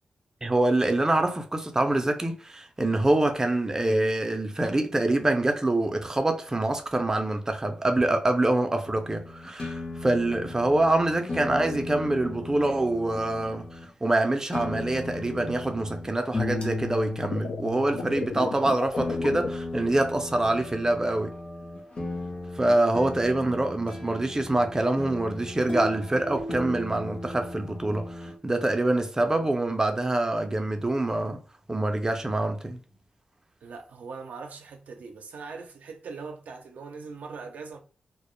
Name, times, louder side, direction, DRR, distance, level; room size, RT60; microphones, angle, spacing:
voice 1, 0.4-21.4 22.5-31.4 31.7-32.8, right 2 dB, 20° right, 0.4 m, -25 dB
sound 1, 8.8-13.9 14.5-28.3, left 2 dB, 40° left, 0.7 m, -36 dB
sound 2, 17.2-19.5, left 4 dB, 70° left, 0.3 m, -33 dB
voice 2, 33.6-37.8, right 4 dB, 80° right, 0.4 m, -41 dB
2.1 x 2.0 x 3.0 m
cardioid pair, 55°, 3 cm